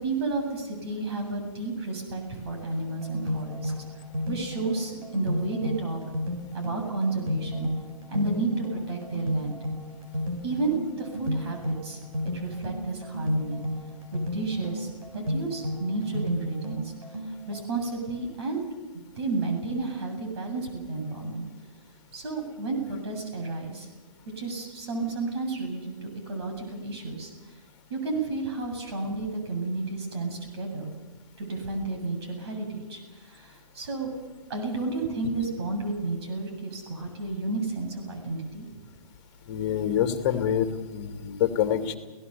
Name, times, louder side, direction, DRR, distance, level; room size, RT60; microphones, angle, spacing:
voice 1, 0.0-3.9 4.3-6.0 6.5-7.7 8.1-9.6 10.4-12.0 12.3-13.6 14.1-16.8 17.5-18.6 19.2-21.4 22.1-23.9 24.4-27.3 27.9-30.9 31.4-34.1 34.5-38.7, right 3 dB, 45° right, 4 dB, 7.8 m, -31 dB
sound 1, 2.8-17.6, equal, 70° right, 6.0 m, -33 dB
voice 2, 39.5-42.0, left 9 dB, 30° left, 7 dB, 2.6 m, -26 dB
29.5 x 17.5 x 7.0 m, 1.2 s
figure-of-eight pair, 130°, 19 cm